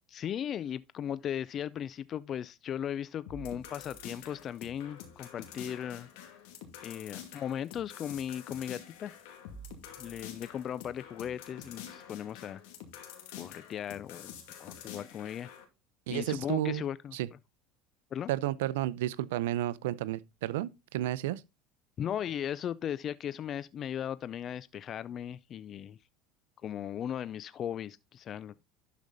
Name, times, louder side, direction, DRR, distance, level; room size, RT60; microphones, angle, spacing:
voice 1, 0.1-6.1 6.8-9.1 10.0-12.6 13.4-14.3 14.6-15.5 16.1-17.1 18.1-18.3 22.0-26.0 26.6-28.6, left 9 dB, 40° left, 0.4 m, -37 dB
sound 1, 3.3-15.6, left 7 dB, 80° left, 2.4 m, -47 dB
voice 2, 16.1-16.8 17.1-17.3 18.3-21.4, right 14 dB, 85° right, 0.6 m, -32 dB
11.5 x 5.1 x 4.0 m
supercardioid pair, 105°, 0 cm